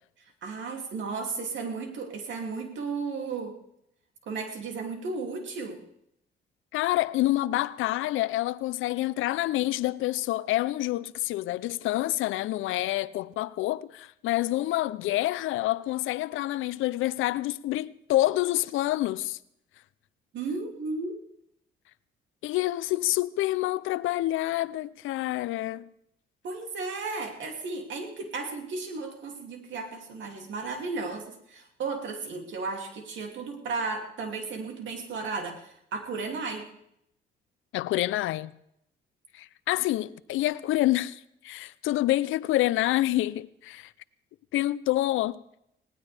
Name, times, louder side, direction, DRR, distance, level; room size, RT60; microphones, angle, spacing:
voice 1, 0.4-3.5 4.3-5.8 20.3-21.1 26.4-36.7, right 4 dB, 70° right, 2.7 m, -34 dB
voice 2, 6.7-19.4 22.4-25.9 37.7-38.5 39.3-43.9 44.5-45.4, left 16 dB, 85° left, 0.5 m, -27 dB
19.0 x 18.0 x 3.4 m
cardioid pair, 90°, 20 cm